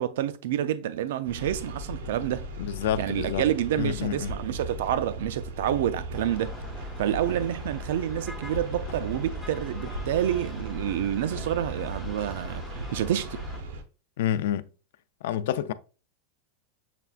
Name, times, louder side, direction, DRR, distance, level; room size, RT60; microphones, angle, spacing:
voice 1, 0.0-2.5 3.0-12.6 12.9-13.4, right 11 dB, 70° right, 0.3 m, -28 dB
sound 1, 1.2-13.8, right 1 dB, 90° right, 0.8 m, -37 dB
voice 2, 2.6-3.4 3.8-4.3 14.2-14.6 15.2-15.7, left 11 dB, 65° left, 0.3 m, -28 dB
sound 2, 6.1-6.3 7.3-7.7 8.4-8.6 8.9-9.5 9.9-10.0 10.3-10.6 10.9-11.1 11.4-11.5, left 6 dB, 40° left, 0.8 m, -48 dB
sound 3, 6.1-13.6, equal, ahead, 0.6 m, -42 dB
6.8 x 2.4 x 2.4 m
supercardioid pair, 175°, 0 cm